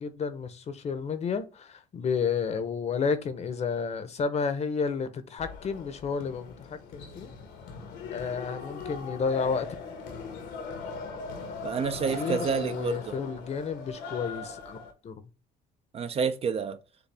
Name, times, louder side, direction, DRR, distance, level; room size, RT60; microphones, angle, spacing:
voice 1, 0.0-7.3 8.1-9.7 12.1-15.1, left 5 dB, 40° left, 0.7 m, -31 dB
sound 1, 5.4-14.9, left 4 dB, 80° left, 1.2 m, -40 dB
voice 2, 11.6-13.1 15.9-16.8, right 6 dB, 35° right, 0.4 m, -29 dB
6.8 x 2.3 x 3.4 m
cardioid pair, 110°, 17 cm